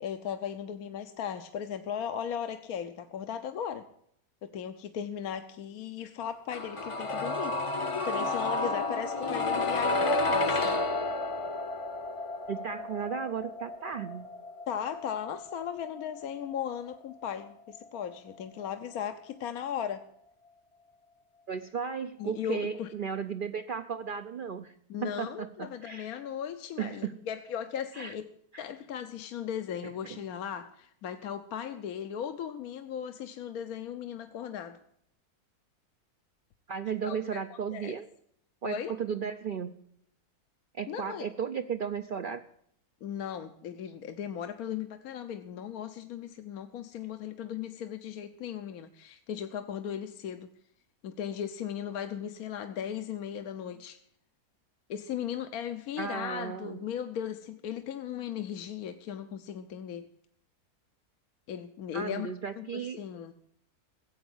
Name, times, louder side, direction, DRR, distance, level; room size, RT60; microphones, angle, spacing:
voice 1, 0.0-3.9 4.4-10.8 14.7-20.0 22.2-22.9 24.9-28.3 28.6-34.8 37.0-37.2 37.5-37.9 38.6-38.9 40.9-41.2 43.0-50.5 51.0-54.0 54.9-60.0 61.5-62.3 62.6-63.3, left 9 dB, 75° left, 8 dB, 1.2 m, -37 dB
sound 1, 6.5-18.3 18.6-18.7, left 2 dB, 30° left, 0.7 m, -32 dB
voice 2, 12.5-14.3 21.5-24.7 25.0-26.1 26.8-27.1 27.9-28.1 28.5-28.6 30.0-30.2 36.7-38.1 38.6-39.7 40.7-42.4 56.0-56.8 61.9-63.0, right 7 dB, 55° right, 7 dB, 0.6 m, -35 dB
15.0 x 8.1 x 7.9 m, 0.69 s
omnidirectional pair, 1.6 m